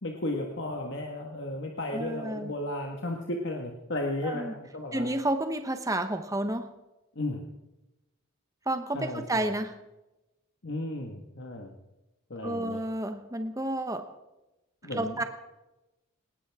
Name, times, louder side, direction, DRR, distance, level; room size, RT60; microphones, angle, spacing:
voice 1, 0.0-5.1 7.2-7.5 8.9-9.5 10.6-11.8 12.3-12.8 14.8-15.2, left 1 dB, 55° left, 1 dB, 1.7 m, -34 dB
voice 2, 1.9-2.5 4.2-4.5 4.9-6.7 8.7-9.7 12.4-14.0 14.9-15.2, right 1 dB, 15° right, 8 dB, 0.9 m, -30 dB
19.5 x 18.0 x 3.7 m, 0.99 s
head